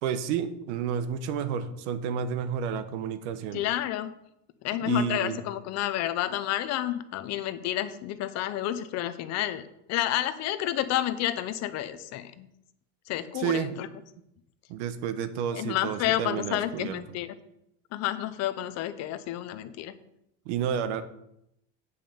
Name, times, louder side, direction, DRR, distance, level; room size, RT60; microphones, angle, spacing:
voice 1, 0.0-3.6 4.8-5.4 13.3-13.7 14.7-17.0 20.4-21.0, right 8 dB, 75° right, 11 dB, 1.1 m, -30 dB
voice 2, 3.5-4.2 4.6-12.5 13.1-13.9 15.5-17.3 17.9-19.9, left 13 dB, 50° left, 13 dB, 0.8 m, -30 dB
8.3 x 5.6 x 6.9 m, 0.80 s
supercardioid pair, 135°, 35 cm